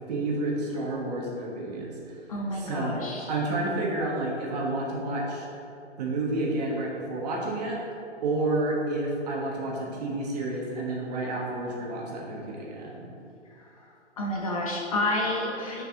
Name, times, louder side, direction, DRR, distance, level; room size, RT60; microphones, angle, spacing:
voice 1, 0.1-2.2 2.5-5.5 6.0-7.8 8.2-13.1, right 2 dB, 35° right, -2 dB, 1.5 m, -30 dB
voice 2, 2.3-3.3 13.6-13.9 14.2-15.8, left 1 dB, 30° left, -2 dB, 0.7 m, -30 dB
8.7 x 5.4 x 3.8 m, 2.8 s
figure-of-eight pair, 135°, 37 cm